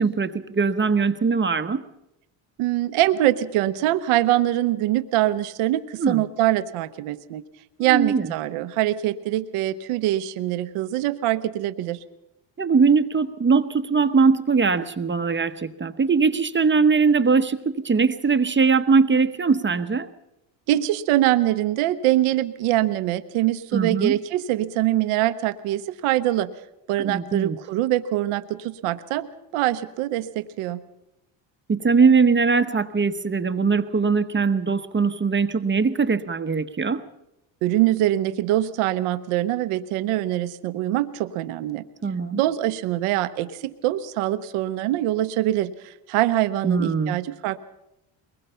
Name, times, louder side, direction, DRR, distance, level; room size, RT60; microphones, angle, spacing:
voice 1, 0.0-1.8 6.0-6.2 7.9-8.3 12.6-20.1 23.7-24.2 27.0-27.6 31.7-37.0 42.0-42.4 46.6-47.2, right 5 dB, 25° right, 9 dB, 1.0 m, -21 dB
voice 2, 2.6-7.4 7.8-12.0 20.7-26.5 26.9-29.3 29.5-30.8 37.6-41.8 42.3-47.6, right 14 dB, 85° right, 11 dB, 1.0 m, -23 dB
22.5 x 20.5 x 5.7 m, 0.89 s
cardioid pair, 90°, 49 cm